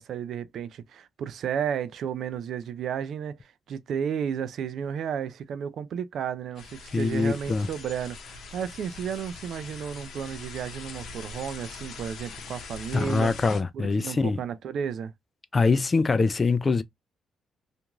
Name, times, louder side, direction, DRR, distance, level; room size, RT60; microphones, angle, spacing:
voice 1, 0.0-13.3 13.7-15.1, right 8 dB, 65° right, 0.3 m, -33 dB
sound 1, 6.6-13.6, left 4 dB, 65° left, 0.8 m, -42 dB
voice 2, 6.9-7.7 12.9-14.4 15.5-16.8, left 4 dB, 30° left, 0.4 m, -24 dB
2.9 x 2.5 x 2.2 m
cardioid pair, 90°, 0 cm